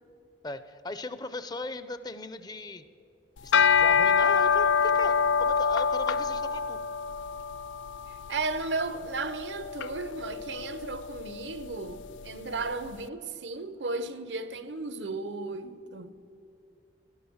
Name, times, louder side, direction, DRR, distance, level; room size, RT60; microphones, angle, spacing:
voice 1, 0.4-2.8 3.4-6.8, left 2 dB, 20° left, 0.6 m, -38 dB
sound 1, 3.4-12.7, left 6 dB, 80° left, 0.4 m, -27 dB
voice 2, 8.3-16.1, right 3 dB, 70° right, 0.8 m, -34 dB
17.0 x 11.5 x 7.2 m
head